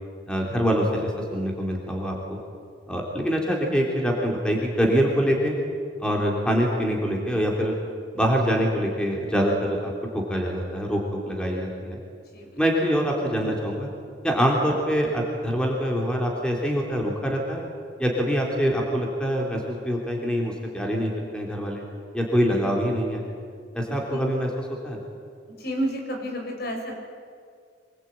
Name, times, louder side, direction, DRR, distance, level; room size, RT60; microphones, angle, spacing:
voice 1, 0.3-2.4 2.9-5.5 6.0-7.7 8.1-11.0 11.3-12.0 12.6-13.9 14.2-17.7 18.0-19.6 19.8-21.8 22.1-23.2 23.7-25.0, equal, 5° left, -1 dB, 3.5 m, -25 dB
voice 2, 25.6-26.9, equal, 60° left, 2 dB, 5.8 m, -30 dB
25.0 x 21.0 x 9.1 m, 2.2 s
head